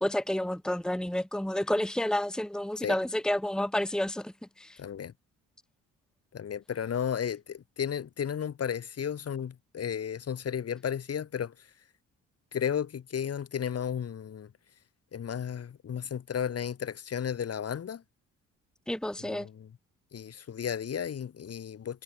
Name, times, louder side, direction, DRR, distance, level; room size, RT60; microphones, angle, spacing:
voice 1, 0.0-4.8 18.9-19.5, left 1 dB, ahead, 1.7 m, -30 dB
voice 2, 4.8-5.1 6.3-11.5 12.5-14.5 15.1-18.0 19.2-19.7 20.1-22.0, left 8 dB, 55° left, 3.9 m, -33 dB
cardioid pair, 90°, 30 cm